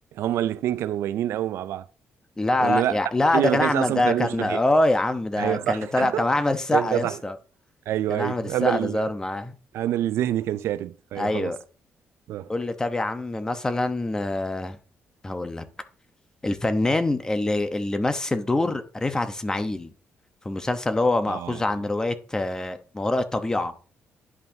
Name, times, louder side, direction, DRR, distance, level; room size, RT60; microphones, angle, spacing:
voice 1, 0.1-1.9 2.6-3.0 3.3-4.6 5.4-6.3 6.7-7.2 7.9-9.1 9.7-11.6 12.3-12.5 21.3-21.6, right 12 dB, 80° right, 0.4 m, -26 dB
voice 2, 2.4-7.3 8.1-9.5 11.2-11.6 12.5-14.8 15.2-15.6 16.4-19.9 20.4-23.7, left 2 dB, 15° left, 0.9 m, -25 dB
11.0 x 5.5 x 2.7 m
cardioid pair, 125°, 4 cm